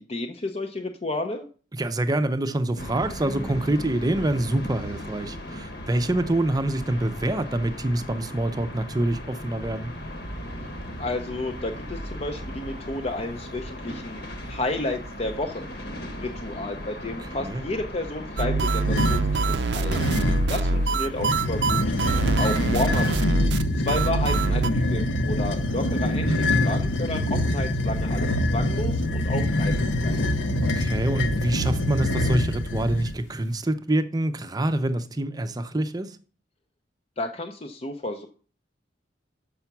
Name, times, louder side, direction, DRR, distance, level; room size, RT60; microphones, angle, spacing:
voice 1, 0.0-1.5 11.0-14.2 14.5-15.7 16.2-20.0 20.5-21.8 22.4-23.5 23.8-26.3 26.6-30.2 37.2-38.3, left 2 dB, 35° left, 0.6 m, -31 dB
voice 2, 1.7-9.9 17.2-17.6 26.2-26.4 30.7-36.2, right 1 dB, 20° right, 0.6 m, -26 dB
sound 1, 2.8-22.7, equal, 60° left, 1.2 m, -38 dB
sound 2, 18.4-24.7, right 3 dB, 65° right, 0.5 m, -24 dB
sound 3, 18.8-19.3 19.9-20.6 21.1-33.2, left 1 dB, 85° left, 0.9 m, -25 dB
6.9 x 5.6 x 5.9 m
head